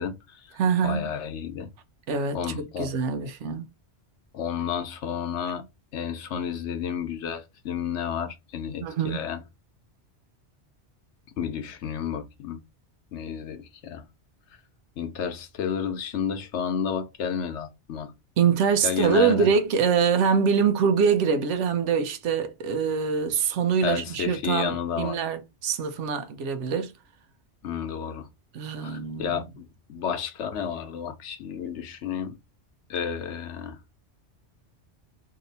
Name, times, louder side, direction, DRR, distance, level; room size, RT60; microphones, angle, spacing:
voice 1, 0.0-0.6 0.8-1.7 2.3-2.9 4.3-5.6 5.9-9.4 11.4-12.6 13.1-14.1 15.0-18.1 18.8-19.5 23.8-25.2 27.6-28.3 28.8-32.4 32.9-33.8, left 7 dB, 80° left, 1.0 m, -31 dB
voice 2, 0.6-1.1 2.1-3.7 8.8-9.3 18.4-26.9 28.5-29.5, right 6 dB, 85° right, 0.9 m, -24 dB
2.9 x 2.7 x 3.9 m
omnidirectional pair, 1.2 m